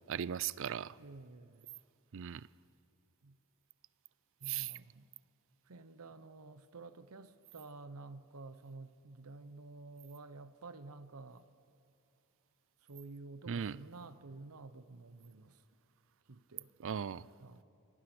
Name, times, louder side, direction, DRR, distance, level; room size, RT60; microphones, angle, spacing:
voice 1, 0.1-1.0 2.1-2.5 4.5-4.7 13.5-13.8 16.8-17.2, right 8 dB, 60° right, 0.4 m, -37 dB
voice 2, 1.0-1.8 3.2-3.4 4.4-5.1 5.7-11.5 12.8-15.6 16.3-16.7 17.4-17.6, right 3 dB, 80° right, 0.9 m, -51 dB
27.5 x 22.0 x 6.1 m
head